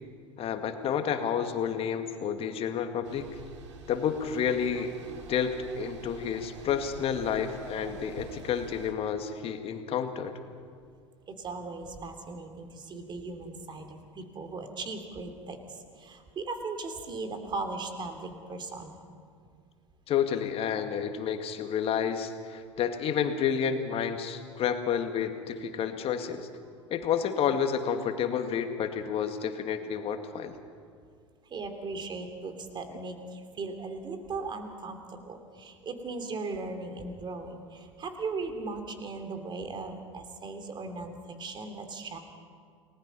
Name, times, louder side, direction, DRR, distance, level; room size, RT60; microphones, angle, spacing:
voice 1, 0.4-3.3 3.9-5.0 5.3-10.4 20.1-26.5 26.9-30.6, left 8 dB, 40° left, 7 dB, 2.1 m, -30 dB
sound 1, 3.0-8.9, right 5 dB, 70° right, 2.6 m, -45 dB
voice 2, 11.3-19.0 31.4-42.2, right 3 dB, 30° right, 6 dB, 3.1 m, -38 dB
29.5 x 19.5 x 5.6 m, 2.1 s
figure-of-eight pair, 75°, 16 cm